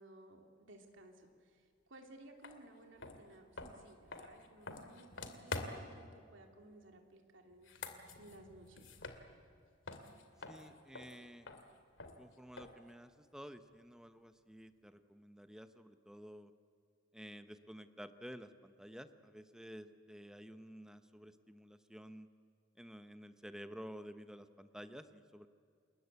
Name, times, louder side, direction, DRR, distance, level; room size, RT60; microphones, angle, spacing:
voice 1, 0.0-8.9, right 1 dB, 75° right, 3 dB, 3.1 m, -59 dB
sound 1, 2.4-2.6 3.0-6.0 7.5-9.6 9.9-12.9, left 3 dB, 75° left, 2.5 m, -47 dB
voice 2, 10.4-11.5 12.2-16.5 17.1-22.3 22.8-25.5, equal, 5° right, 9 dB, 1.0 m, -52 dB
29.5 x 21.0 x 8.2 m, 2.3 s
head